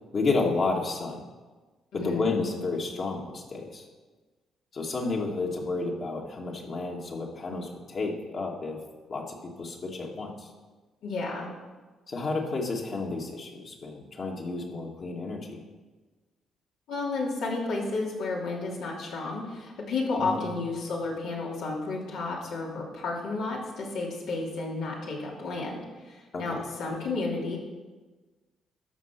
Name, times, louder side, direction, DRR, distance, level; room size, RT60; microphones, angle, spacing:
voice 1, 0.1-1.2 1.9-3.9 4.7-8.8 9.1-10.5 12.1-15.6 20.2-20.5 26.3-26.6, left 3 dB, 50° left, -1 dB, 2.0 m, -31 dB
voice 2, 1.9-2.3 11.0-11.5 16.9-27.6, left 3 dB, 85° left, -3 dB, 2.9 m, -32 dB
13.5 x 5.6 x 5.9 m, 1.3 s
cardioid pair, 90°, 0 cm